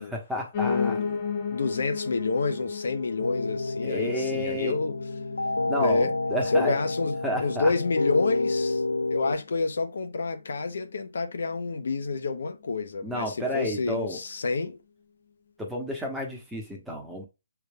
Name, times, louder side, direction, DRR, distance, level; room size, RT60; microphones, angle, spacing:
voice 1, 0.0-1.0 3.8-4.7 5.6-6.8 7.2-7.7 13.0-14.2 15.6-17.2, equal, 5° right, 1.2 m, -31 dB
Piano, 0.5-9.6 10.0-11.2 11.5-11.6 11.8-11.9 12.1-12.2 12.8-12.9, left 6 dB, 35° left, 0.8 m, -35 dB
voice 2, 0.6-5.0 5.8-6.1 6.4-8.8 9.1-14.8, left 3 dB, 65° left, 0.8 m, -29 dB
sound 1, 3.2-9.4, left 2 dB, 85° left, 0.3 m, -29 dB
6.5 x 3.4 x 2.3 m
figure-of-eight pair, 145°, 0 cm